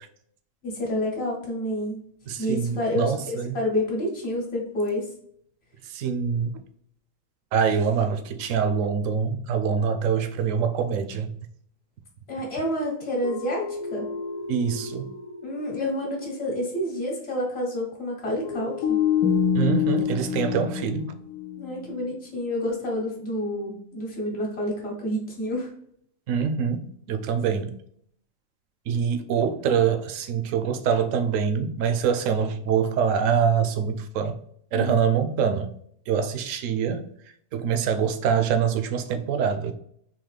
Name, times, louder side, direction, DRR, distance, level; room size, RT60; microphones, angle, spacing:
voice 1, 0.6-2.0 2.4-5.1 12.3-14.1 15.4-19.0 21.6-25.7 34.7-35.0, left 1 dB, 50° left, 1.3 m, -29 dB
voice 2, 2.3-3.6 5.8-6.6 7.5-11.3 14.5-15.1 19.5-21.1 26.3-27.7 28.9-34.4 34.7-35.7 36.1-37.1 37.5-39.7, right 7 dB, 70° right, 0.9 m, -25 dB
sound 1, 13.2-15.8 16.1-16.2 18.4-22.1, left 7 dB, 75° left, 1.1 m, -27 dB
3.9 x 2.8 x 3.2 m
omnidirectional pair, 1.5 m